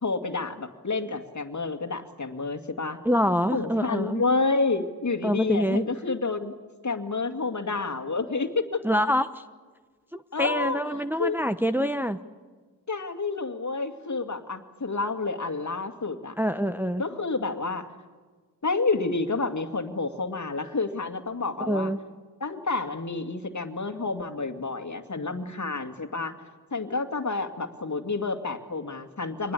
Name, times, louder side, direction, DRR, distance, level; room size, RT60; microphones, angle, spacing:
voice 1, 0.0-3.0 3.5-6.5 6.8-8.8 10.3-11.4 12.9-16.4 17.0-17.9 18.6-21.9 22.4-26.4 26.7-29.5, left 3 dB, 45° left, 6 dB, 2.4 m, -29 dB
voice 2, 3.0-4.2 5.2-5.8 8.8-9.4 10.1-12.2 16.4-17.0 21.7-22.0, equal, 5° right, 8 dB, 1.0 m, -25 dB
25.5 x 20.0 x 8.5 m, 1.4 s
cardioid pair, 45°, 40 cm